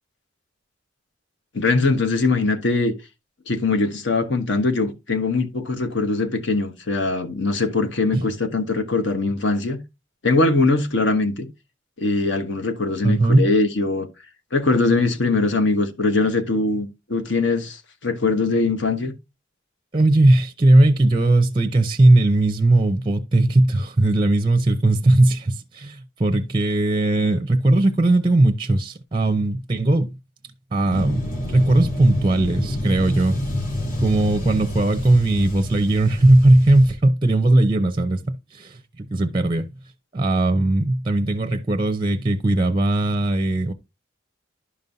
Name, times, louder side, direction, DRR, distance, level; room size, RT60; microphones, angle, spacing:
voice 1, 1.5-2.9 3.5-9.8 10.2-11.5 12.0-14.1 14.5-19.1, left 3 dB, 65° left, 1.2 m, -21 dB
voice 2, 13.0-13.5 19.9-30.1 30.7-33.4 34.0-39.7 40.1-43.7, right 2 dB, 25° right, 0.5 m, -18 dB
sound 1, 30.9-36.9, left 1 dB, 40° left, 2.4 m, -28 dB
11.5 x 5.4 x 2.7 m
head